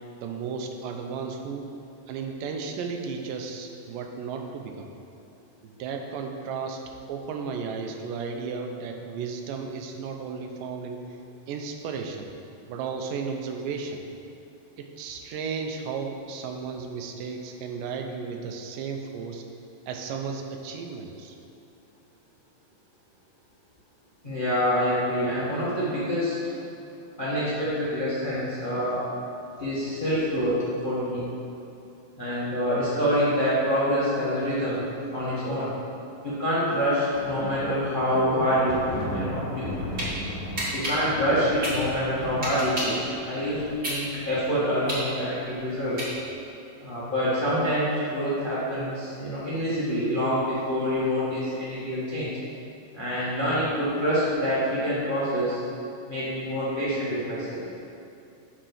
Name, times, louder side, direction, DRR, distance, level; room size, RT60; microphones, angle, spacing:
voice 1, 0.2-1.7 2.1-4.9 5.6-6.8 7.1-11.0 11.5-12.3 12.7-14.0 14.8-19.4 19.9-21.4, right 5 dB, 80° right, 4 dB, 2.2 m, -34 dB
voice 2, 24.2-26.3 27.2-29.0 29.6-31.2 32.2-34.8 35.1-35.7 36.2-38.8 39.1-39.7 40.7-46.1 46.8-52.3 52.9-55.6 56.1-57.6, equal, 80° left, -10 dB, 0.4 m, -26 dB
sound 1, 37.1-44.5, left 1 dB, 50° left, 1.3 m, -36 dB
sound 2, 39.7-40.1 40.6-43.0 43.5-46.5, right 1 dB, 25° right, 1.5 m, -32 dB
6.1 x 5.7 x 6.4 m, 2.8 s
omnidirectional pair, 4.0 m